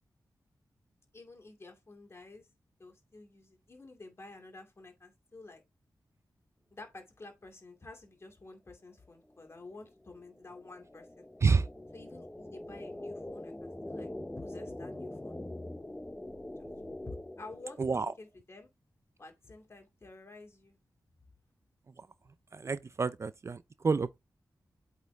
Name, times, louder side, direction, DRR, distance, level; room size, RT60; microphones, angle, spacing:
voice 1, 1.1-2.5 2.8-5.6 6.7-11.3 11.9-14.1 14.4-15.4 17.1-18.7 19.2-20.8, left 2 dB, 35° left, 2.4 m, -50 dB
sound 1, 9.3-18.2, left 1 dB, 15° left, 0.7 m, -44 dB
voice 2, 22.5-24.2, right 4 dB, 40° right, 0.4 m, -29 dB
8.2 x 4.3 x 3.4 m
wide cardioid pair, 120°, 7 cm